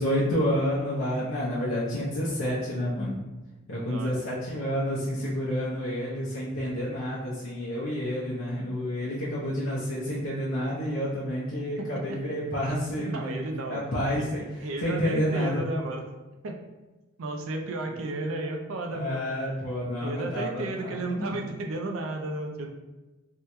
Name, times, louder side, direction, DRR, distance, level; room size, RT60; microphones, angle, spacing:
voice 1, 0.0-3.2 3.7-14.4 14.8-15.6 18.9-21.5, equal, 70° left, -8 dB, 0.6 m, -29 dB
voice 2, 3.8-4.2 11.8-12.4 13.0-13.9 14.2-14.3 14.6-16.0 16.4-16.6 17.2-19.3 20.0-22.7, right 2 dB, 80° right, 3 dB, 0.4 m, -33 dB
3.5 x 2.1 x 2.9 m, 1.1 s
head